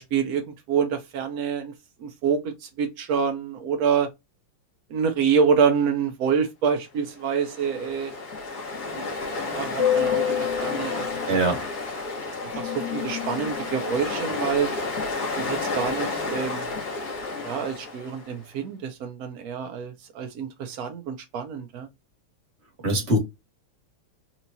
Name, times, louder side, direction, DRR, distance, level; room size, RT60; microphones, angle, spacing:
voice 1, 0.0-1.7 2.0-4.1 4.9-8.1 8.9-9.1 9.4-11.4 12.3-14.7 15.4-16.7 17.4-21.9, right 6 dB, 80° right, 0.8 m, -27 dB
Ocean, 7.2-18.3, left 5 dB, 50° left, 1.9 m, -29 dB
voice 2, 11.3-11.6 22.8-23.2, right 1 dB, 35° right, 1.5 m, -22 dB
4.5 x 3.0 x 2.6 m
omnidirectional pair, 2.4 m